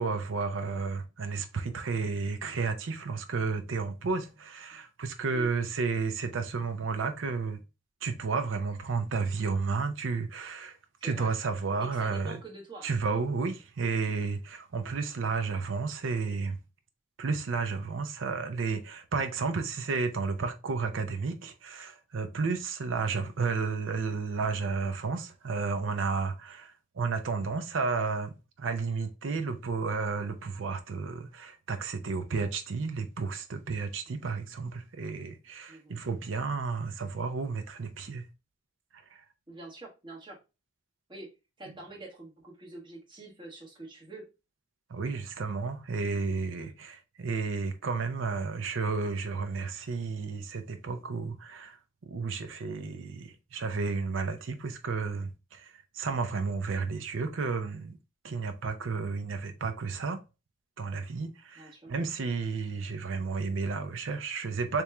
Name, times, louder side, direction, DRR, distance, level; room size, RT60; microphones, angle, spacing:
voice 1, 0.0-7.6 8.0-10.8 11.0-12.4 12.8-16.6 17.2-38.2 38.9-39.2 44.9-51.8 52.0-58.0 58.2-60.2 60.8-64.8, right 4 dB, 85° right, 0.5 m, -32 dB
voice 2, 11.0-11.3 11.8-12.9 34.1-34.2 35.7-36.0 39.5-40.4 41.1-41.3 41.6-44.2 46.6-46.7 61.5-61.9, right 2 dB, 25° right, 1.2 m, -45 dB
3.4 x 3.0 x 3.3 m
head